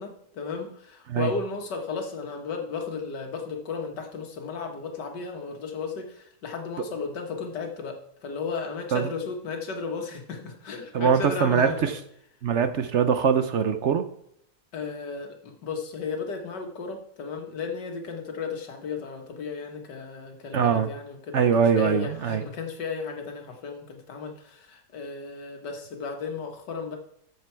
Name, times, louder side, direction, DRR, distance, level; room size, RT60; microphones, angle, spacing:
voice 1, 0.0-11.8 14.7-21.5 21.8-27.0, left 5 dB, 85° left, 4 dB, 2.1 m, -34 dB
voice 2, 10.9-11.9 12.4-14.0 20.5-20.9 21.3-22.4, right 7 dB, 60° right, 9 dB, 0.8 m, -22 dB
13.5 x 6.8 x 4.6 m, 0.71 s
omnidirectional pair, 1.8 m